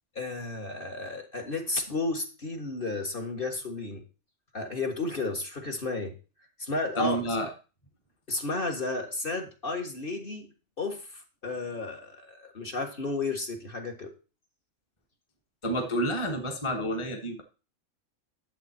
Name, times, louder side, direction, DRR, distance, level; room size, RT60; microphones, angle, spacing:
voice 1, 0.2-4.0 4.5-6.1 6.6-7.2 8.3-10.5 10.8-14.1, left 3 dB, 40° left, 3 dB, 1.7 m, -33 dB
voice 2, 7.0-7.5 15.6-17.4, right 1 dB, 20° left, 4 dB, 1.5 m, -29 dB
11.5 x 7.7 x 4.4 m, 0.34 s
omnidirectional pair, 1.5 m